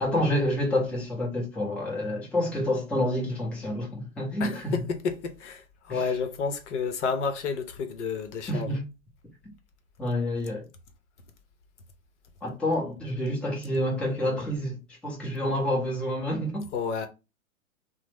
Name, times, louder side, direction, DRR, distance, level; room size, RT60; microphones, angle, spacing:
voice 1, 0.0-4.8 5.9-6.0 8.5-8.8 10.0-10.6 12.4-16.7, left 1 dB, 5° left, 0.7 m, -28 dB
voice 2, 4.4-8.7 16.7-17.1, left 5 dB, 60° left, 0.7 m, -30 dB
2.9 x 2.0 x 3.4 m
hypercardioid pair, 115°, 41 cm